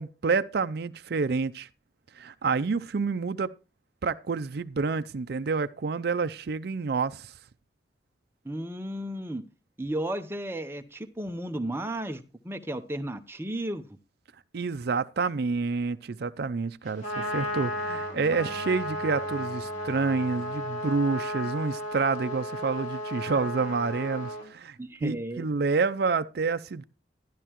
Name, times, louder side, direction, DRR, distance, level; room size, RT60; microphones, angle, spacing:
voice 1, 0.0-1.7 2.2-3.5 4.0-7.3 14.5-26.8, right 4 dB, 60° right, 0.5 m, -28 dB
voice 2, 8.4-9.4 9.8-13.8 24.8-25.5, right 1 dB, 15° right, 0.7 m, -34 dB
Bowed string instrument, 16.9-21.8, equal, 75° left, 7.5 m, -49 dB
Trumpet, 16.9-24.5, equal, 45° left, 2.9 m, -34 dB
12.0 x 11.0 x 3.0 m
head